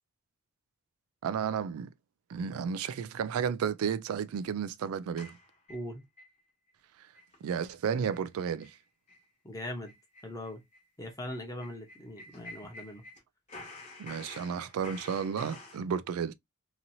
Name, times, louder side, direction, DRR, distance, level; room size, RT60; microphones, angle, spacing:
voice 1, 1.2-1.9 2.3-5.3 7.4-8.7 14.0-16.3, right 7 dB, 90° right, 0.3 m, -32 dB
sound 1, 5.2-6.3 6.7-6.8 7.1-7.4 7.7-7.8 8.1-8.3 8.6-8.8 9.1-9.2 9.6-13.2 13.5-15.8, left 2 dB, 35° left, 1.2 m, -49 dB
voice 2, 5.7-6.0 9.4-9.9 10.2-10.6 11.0-13.0, left 1 dB, 15° left, 0.9 m, -40 dB
2.9 x 2.6 x 2.6 m
head